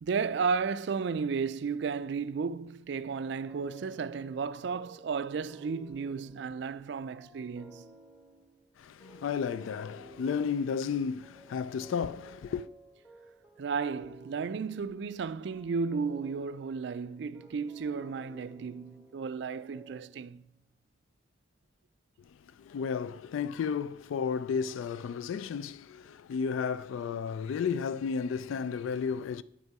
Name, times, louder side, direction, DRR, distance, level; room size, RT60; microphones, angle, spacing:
voice 1, 0.0-7.9 13.6-20.4, right 5 dB, 65° right, 0.3 m, -33 dB
sound 1, 3.3-20.5, equal, 10° left, 1.8 m, -55 dB
voice 2, 8.8-12.7 22.6-29.4, left 6 dB, 85° left, 0.3 m, -33 dB
9.1 x 8.0 x 4.7 m
head